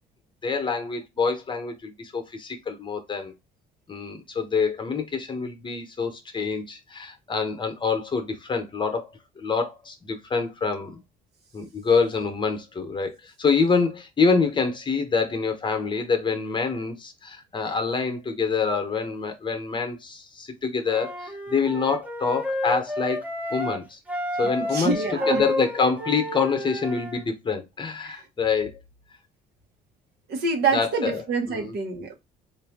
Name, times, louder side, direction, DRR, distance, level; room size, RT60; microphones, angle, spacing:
voice 1, 0.4-3.3 3.9-11.0 11.5-23.2 23.5-24.0 24.4-28.7 30.7-31.2 31.5-31.7, left 5 dB, 30° left, 0.9 m, -26 dB
Wind instrument woodwind instrument, 20.8-23.8 24.1-27.2, left 1 dB, 10° right, 0.8 m, -30 dB
voice 2, 24.7-25.5 28.0-28.2 30.3-32.1, right 4 dB, 70° right, 1.1 m, -26 dB
3.8 x 2.6 x 3.5 m
cardioid pair, 110°, 17 cm